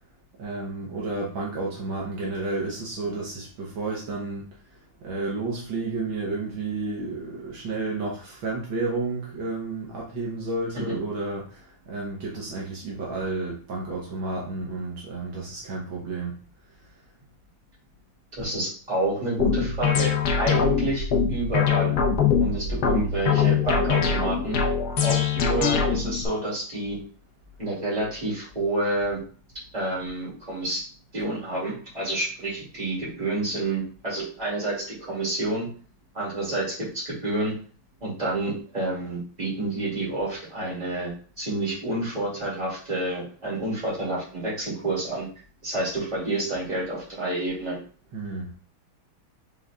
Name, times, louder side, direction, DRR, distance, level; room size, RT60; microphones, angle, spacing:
voice 1, 0.4-4.5 5.0-16.3 48.1-48.6, right 3 dB, 70° right, -3 dB, 1.7 m, -31 dB
voice 2, 18.4-22.0 22.4-24.6 25.0-27.0 27.6-29.2 29.7-30.8 31.1-35.7 36.1-37.5 38.0-41.1 41.4-45.3 45.6-47.8, right 2 dB, 20° right, -7 dB, 2.5 m, -29 dB
sound 1, 19.4-26.2, left 6 dB, 60° left, 1.2 m, -23 dB
5.5 x 3.8 x 2.4 m, 0.42 s
omnidirectional pair, 2.3 m